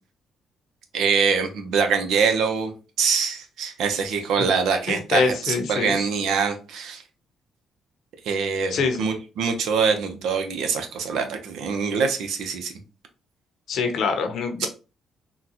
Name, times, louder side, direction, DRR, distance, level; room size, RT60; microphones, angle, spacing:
voice 1, 0.9-7.0 8.2-12.7, right 5 dB, 80° right, 0.7 m, -24 dB
voice 2, 4.9-6.0 8.7-9.0 13.7-14.7, left 5 dB, 70° left, 0.7 m, -24 dB
3.7 x 2.3 x 2.8 m
cardioid pair, 90°, 0 cm